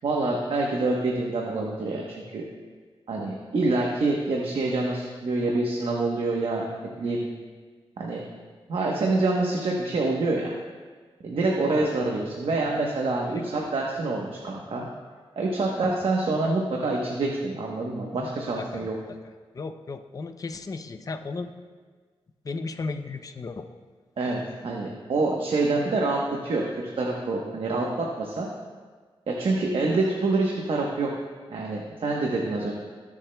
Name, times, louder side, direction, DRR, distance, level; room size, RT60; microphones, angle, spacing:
voice 1, 0.0-2.4 3.1-6.7 7.0-7.2 8.0-8.2 8.7-10.5 11.2-14.9 15.4-18.9 24.2-28.5 29.3-31.1 31.5-32.7, right 2 dB, 65° right, -1 dB, 1.0 m, -26 dB
voice 2, 11.7-12.2 16.4-16.5 18.1-18.3 18.5-19.2 19.5-21.5 22.4-23.7, left 3 dB, 35° left, 8 dB, 0.5 m, -35 dB
20.5 x 7.2 x 2.2 m, 1.5 s
wide cardioid pair, 105°, 10 cm